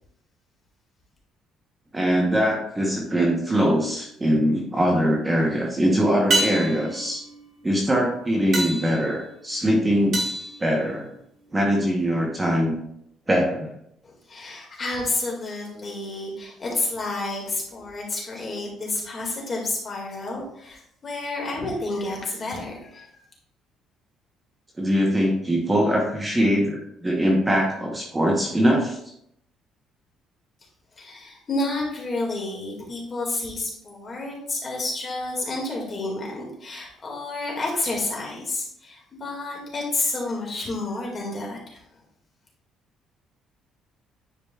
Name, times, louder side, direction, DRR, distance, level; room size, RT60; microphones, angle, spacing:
voice 1, 1.9-7.2 7.6-10.2 10.6-11.1 11.5-12.7 13.3-13.7 24.8-29.0, equal, 15° right, -1 dB, 0.9 m, -22 dB
sound 1, 4.0-4.6 6.3-11.5 15.9-16.0, right 2 dB, 35° right, 1.9 m, -30 dB
voice 2, 14.0-23.2 31.0-41.8, left 2 dB, 30° left, -2 dB, 2.0 m, -30 dB
10.0 x 4.9 x 2.4 m, 0.73 s
cardioid pair, 155°, 0 cm